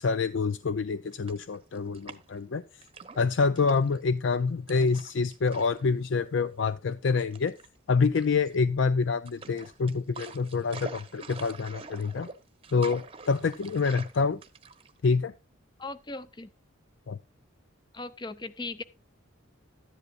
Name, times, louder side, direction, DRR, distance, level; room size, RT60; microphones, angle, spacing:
voice 1, 0.0-2.6 3.2-7.5 7.9-12.3 12.7-14.4 15.0-15.3 17.1-17.2, left 4 dB, 60° left, 0.4 m, -27 dB
sound 1, 1.1-2.5 2.8-4.0 4.7-5.9 6.2-6.3 7.2-7.7 8.1-8.8 9.3-15.1, right 4 dB, 25° right, 0.9 m, -45 dB
voice 2, 15.8-16.5 17.9-18.8, left 3 dB, 20° left, 0.6 m, -38 dB
13.5 x 10.5 x 2.5 m
head